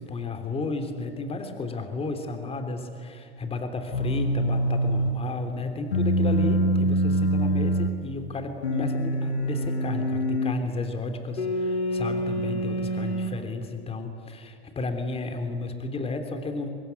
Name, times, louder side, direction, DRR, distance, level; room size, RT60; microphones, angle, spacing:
voice 1, 0.0-16.7, left 3 dB, 20° left, 6 dB, 3.3 m, -33 dB
sound 1, 3.9-5.2 5.9-8.0 8.6-10.6 11.4-13.4, right 1 dB, 90° left, 1.8 m, -25 dB
25.0 x 20.5 x 9.6 m, 2.3 s
hypercardioid pair, 105°, 32 cm